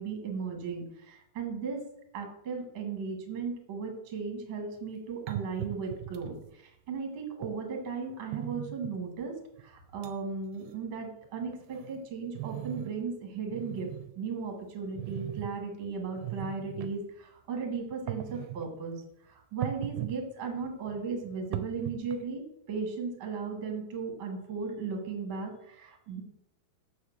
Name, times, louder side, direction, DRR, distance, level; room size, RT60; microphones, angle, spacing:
voice 1, 0.0-1.8 2.1-13.9 14.1-26.2, right 5 dB, 50° right, 2 dB, 1.5 m, -36 dB
sound 1, 4.8-4.9 5.3-6.5 7.4-7.5 8.3-9.0 9.6-9.7 10.0-10.2 10.5-10.7 11.2-13.0 13.4-14.1 14.9-15.5 16.1-16.9 17.9-18.6 19.6-20.2 20.5-22.3, right 15 dB, 80° right, 2.5 m, -39 dB
6.5 x 6.4 x 7.1 m, 0.78 s
omnidirectional pair, 4.7 m